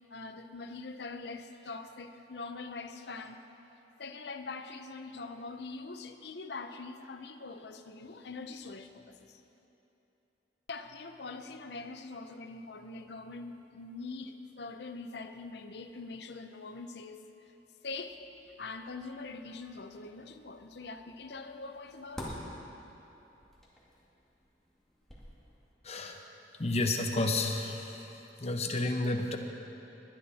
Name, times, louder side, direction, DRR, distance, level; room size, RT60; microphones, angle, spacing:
voice 1, 0.0-3.4 4.0-9.4 10.7-17.2 17.8-18.2 18.6-22.4, left 3 dB, 65° left, 7 dB, 0.7 m, -43 dB
sound 1, 17.8-25.7, equal, ahead, 2.1 m, -50 dB
voice 2, 25.8-26.2 26.6-28.0 28.4-29.4, left 2 dB, 35° left, 3 dB, 1.0 m, -31 dB
21.0 x 9.5 x 4.2 m, 3.0 s
head